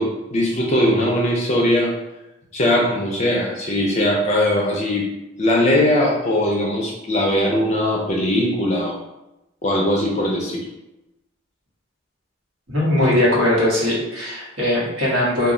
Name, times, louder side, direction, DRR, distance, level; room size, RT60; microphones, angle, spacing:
voice 1, 0.0-1.9 2.5-5.1 5.4-9.0 9.6-10.7 13.0-13.1, left 1 dB, 35° left, -2 dB, 0.4 m, -20 dB
voice 2, 12.7-15.5, left 1 dB, 85° right, -5 dB, 1.1 m, -20 dB
2.2 x 2.0 x 3.6 m, 0.94 s
head